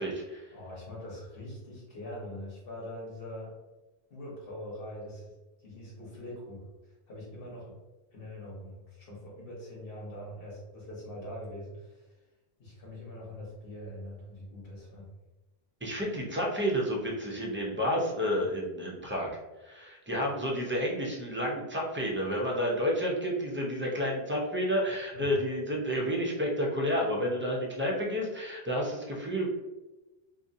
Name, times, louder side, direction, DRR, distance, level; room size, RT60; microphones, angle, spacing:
voice 1, 0.0-0.5 15.8-19.3 19.6-29.5, equal, 20° right, -3 dB, 0.3 m, -30 dB
voice 2, 0.5-3.5 4.1-5.3 5.6-7.7 8.1-12.2 12.6-15.1 25.1-25.4, left 1 dB, 60° left, -5 dB, 1.2 m, -43 dB
2.6 x 2.6 x 2.6 m, 1.1 s
omnidirectional pair, 1.0 m